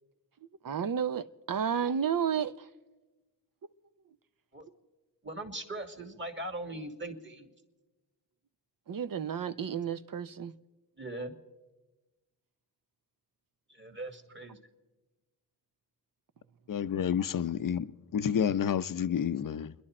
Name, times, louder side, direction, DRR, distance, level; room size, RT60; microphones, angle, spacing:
voice 1, 0.6-2.7 8.9-10.5, right 7 dB, 50° right, 0.8 m, -31 dB
voice 2, 5.2-7.5 11.0-11.4 13.7-14.6, right 1 dB, 25° right, 2.0 m, -40 dB
voice 3, 16.7-19.7, left 8 dB, 45° left, 0.7 m, -30 dB
29.0 x 11.0 x 4.3 m
cardioid pair, 50°, 44 cm